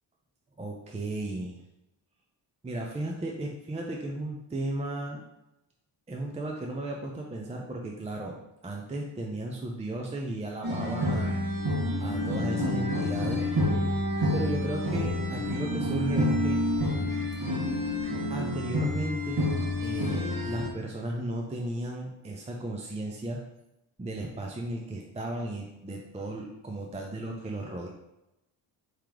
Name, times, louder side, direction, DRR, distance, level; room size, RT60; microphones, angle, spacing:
voice 1, 0.6-1.6 2.6-5.2 6.1-8.4 8.6-11.3 12.0-13.5 14.3-16.7 18.3-19.6 19.8-23.4 24.0-27.9, right 1 dB, 15° right, 0 dB, 0.5 m, -35 dB
sound 1, 10.6-20.7, left 1 dB, 45° right, 1.4 m, -28 dB
4.9 x 2.9 x 3.7 m, 0.89 s
cardioid pair, 80°, 48 cm